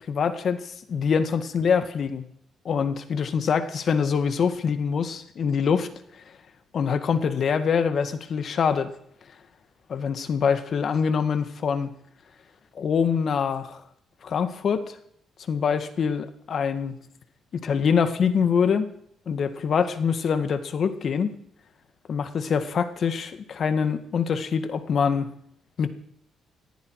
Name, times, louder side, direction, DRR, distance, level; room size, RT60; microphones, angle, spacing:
voice 1, 0.1-2.3 2.7-5.9 6.7-8.9 9.9-11.9 12.8-13.8 14.2-15.0 15.5-17.0 17.5-18.9 19.3-21.3 22.1-25.3 25.8-25.9, left 6 dB, 55° left, 10 dB, 1.8 m, -24 dB
19.5 x 14.5 x 4.8 m, 0.67 s
cardioid pair, 90°, 0 cm